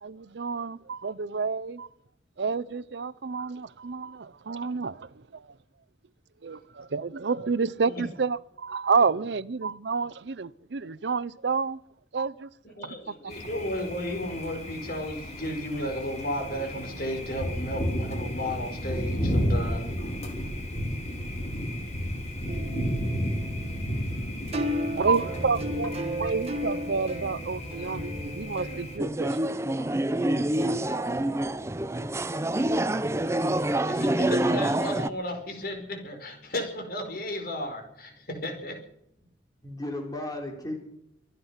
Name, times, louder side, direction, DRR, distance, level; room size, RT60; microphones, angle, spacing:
voice 1, 0.0-1.9 2.4-5.5 6.4-11.8 12.1-12.5 12.8-13.0 25.0-25.9 26.2-29.4 29.8-29.9, right 4 dB, 75° right, 0.6 m, -29 dB
voice 2, 12.6-19.9 33.9-38.8, left 1 dB, 55° left, 4.7 m, -34 dB
Thunder, 13.3-29.0, equal, 40° left, 3.6 m, -33 dB
sound 1, 22.5-36.5, equal, 35° right, 1.8 m, -37 dB
voice 3, 24.8-25.4 39.6-40.8, left 1 dB, 20° left, 3.8 m, -36 dB
sound 2, 29.0-35.1, right 1 dB, 15° right, 0.6 m, -26 dB
24.5 x 9.5 x 5.7 m
head